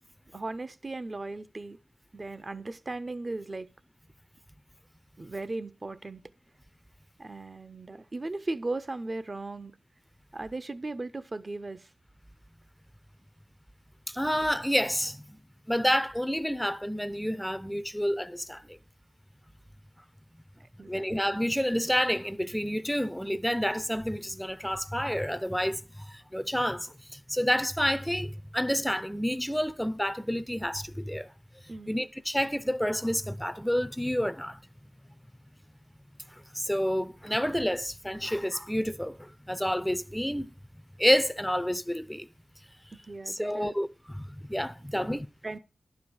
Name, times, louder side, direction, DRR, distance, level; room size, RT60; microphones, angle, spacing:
voice 1, 0.3-1.8 2.1-3.7 5.2-6.2 7.2-9.7 10.3-11.9 14.1-14.2 20.6-21.1 31.7-32.0 42.9-43.8 44.9-45.6, right 2 dB, 40° right, 0.7 m, -37 dB
voice 2, 14.1-15.4 15.7-18.8 20.9-31.3 31.9-34.6 36.5-40.5 41.0-42.3 43.3-45.3, equal, 5° left, 0.6 m, -29 dB
11.5 x 5.0 x 7.1 m
cardioid pair, 60°, 0 cm